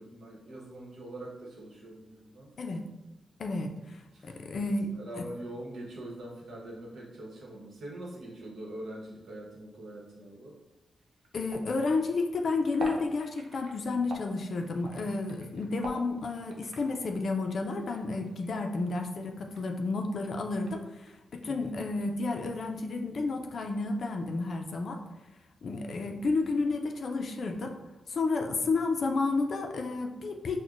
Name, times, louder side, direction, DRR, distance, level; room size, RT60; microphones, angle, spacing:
voice 1, 0.0-2.5 4.1-4.4 4.9-10.5 21.4-21.8 25.7-25.9, right 1 dB, 65° right, -3 dB, 1.0 m, -43 dB
voice 2, 3.4-5.3 11.3-20.9 21.3-25.0 25.6-27.8 28.1-30.6, left 3 dB, 55° left, 4 dB, 0.4 m, -31 dB
sound 1, 11.0-19.7 19.9-22.2, right 2 dB, 80° right, 0.6 m, -46 dB
6.0 x 2.1 x 2.5 m, 1.0 s
wide cardioid pair, 150°, 0 cm